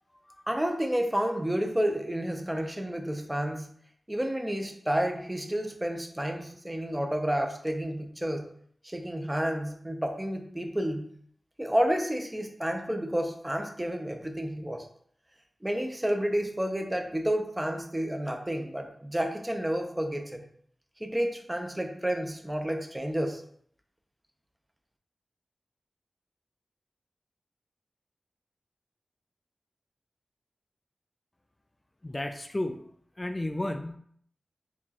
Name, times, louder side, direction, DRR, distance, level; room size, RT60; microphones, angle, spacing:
voice 1, 0.5-3.7 4.1-8.5 8.8-11.1 11.6-14.9 15.6-20.4 21.0-23.4, equal, 15° right, 4 dB, 0.6 m, -30 dB
voice 2, 32.0-32.8 33.2-34.0, left 1 dB, 25° left, 6 dB, 0.3 m, -32 dB
4.2 x 3.0 x 2.9 m, 0.63 s
wide cardioid pair, 70°, 0 cm